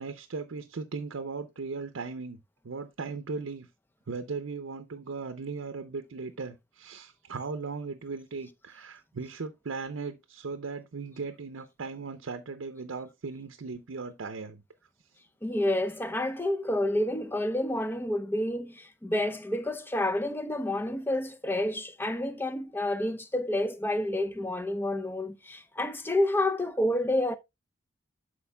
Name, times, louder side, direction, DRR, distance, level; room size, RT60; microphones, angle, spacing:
voice 1, 0.0-2.4 2.6-3.7 4.1-14.6, right 4 dB, 85° right, 0.6 m, -37 dB
voice 2, 15.4-27.4, left 1 dB, 10° left, 0.5 m, -29 dB
11.5 x 4.4 x 2.2 m
head